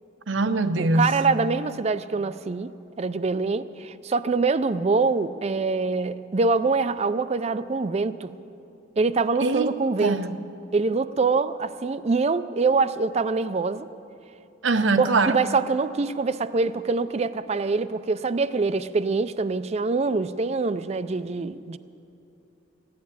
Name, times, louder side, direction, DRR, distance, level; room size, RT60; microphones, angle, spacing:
voice 1, 0.3-1.3 9.4-9.7 10.0-10.4 14.6-15.4, right 3 dB, 75° right, 10 dB, 0.7 m, -23 dB
voice 2, 0.8-2.7 3.0-8.3 9.0-10.2 10.7-13.9 15.0-21.8, right 4 dB, 35° right, 14 dB, 0.4 m, -24 dB
15.0 x 10.5 x 8.5 m, 2.8 s
head